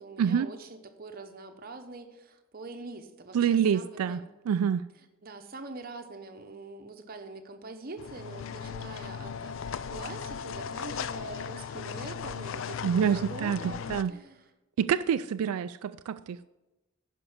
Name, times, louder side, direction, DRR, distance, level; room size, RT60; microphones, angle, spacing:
voice 1, 0.0-4.3 5.2-14.5, right 3 dB, 40° right, 5 dB, 0.9 m, -44 dB
voice 2, 3.3-4.2 4.5-4.8 12.8-14.1 14.8-16.5, right 8 dB, 90° right, 12 dB, 0.3 m, -27 dB
sound 1, 8.0-14.0, left 7 dB, 60° left, 0.4 m, -37 dB
10.5 x 5.4 x 7.1 m, 1.0 s
head